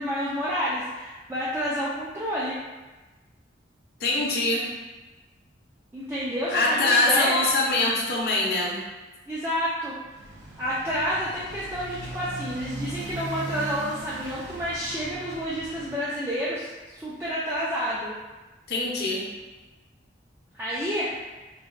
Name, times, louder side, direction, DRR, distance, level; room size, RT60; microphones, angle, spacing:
voice 1, 0.0-2.6 5.9-7.4 9.3-9.9 10.6-18.1 20.5-21.1, equal, 15° right, -8 dB, 0.3 m, -29 dB
voice 2, 4.0-4.7 6.5-8.8 18.7-19.2, left 2 dB, 55° left, -3 dB, 0.5 m, -23 dB
Motorcycle, 10.0-16.0, right 2 dB, 90° right, 0.4 m, -39 dB
3.9 x 2.1 x 2.4 m, 1.2 s
head